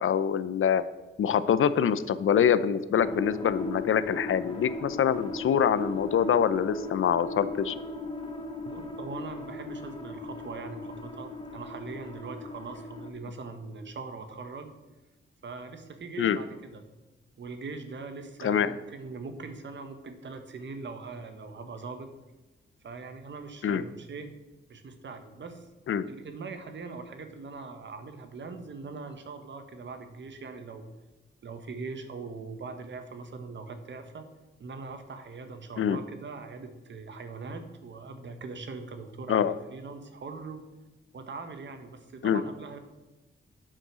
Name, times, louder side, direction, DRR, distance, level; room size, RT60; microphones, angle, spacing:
voice 1, 0.0-0.8 1.2-7.7 16.2-16.4 18.4-18.7 23.6-23.8 25.9-26.0 35.8-36.0 39.3-39.5 42.2-42.4, left 8 dB, 75° left, 15 dB, 0.7 m, -25 dB
sound 1, 3.0-13.1, left 2 dB, 25° left, 1.4 m, -38 dB
voice 2, 8.6-14.7 15.4-16.8 17.4-22.1 22.8-24.3 24.7-25.7 26.1-30.8 31.4-34.3 34.6-40.6 41.1-42.8, right 4 dB, 60° right, 7 dB, 1.5 m, -41 dB
12.0 x 6.5 x 6.3 m, 1.1 s
wide cardioid pair, 145°, 21 cm